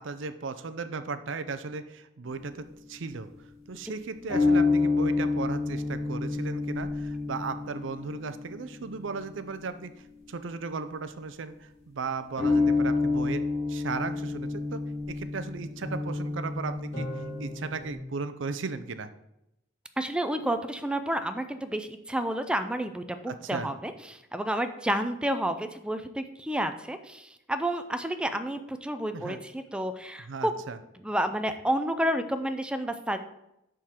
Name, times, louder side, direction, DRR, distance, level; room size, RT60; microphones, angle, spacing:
voice 1, 0.0-3.3 3.7-9.9 10.3-13.4 13.7-14.8 15.1-19.1 23.3-23.7 29.1-29.4 30.2-30.8, right 4 dB, 70° right, 12 dB, 0.6 m, -36 dB
sound 1, 2.2-3.3 4.3-10.4 12.4-17.9, left 3 dB, 35° left, 3.2 m, -29 dB
voice 2, 20.0-30.5 31.0-33.2, right 1 dB, 5° right, 9 dB, 0.4 m, -30 dB
11.0 x 3.8 x 4.4 m, 0.85 s
head